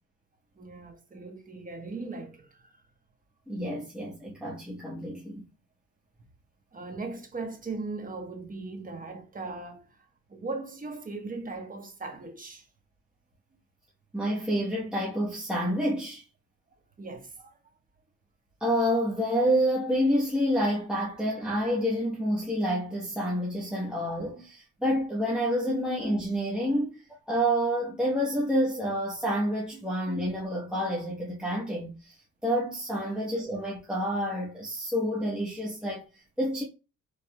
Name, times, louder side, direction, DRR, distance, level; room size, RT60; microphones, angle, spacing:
voice 1, 0.6-2.8 6.7-10.0 10.3-12.7 17.0-17.6 26.7-26.8 29.7-29.8, right 3 dB, 30° right, 1.1 m, -39 dB
voice 2, 3.5-5.4 14.1-16.2 18.6-32.2 32.4-36.6, equal, 5° right, 1.0 m, -28 dB
4.7 x 3.2 x 2.2 m
cardioid pair, 90°, 30 cm